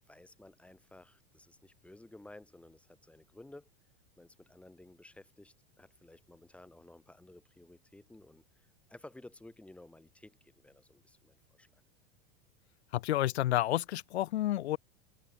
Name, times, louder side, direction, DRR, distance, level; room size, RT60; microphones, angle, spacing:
voice 1, 0.1-3.7 4.2-11.8, left 2 dB, 5° left, 6.0 m, -55 dB
voice 2, 12.9-14.8, left 14 dB, 90° left, 2.0 m, -30 dB
supercardioid pair, 160°, 32 cm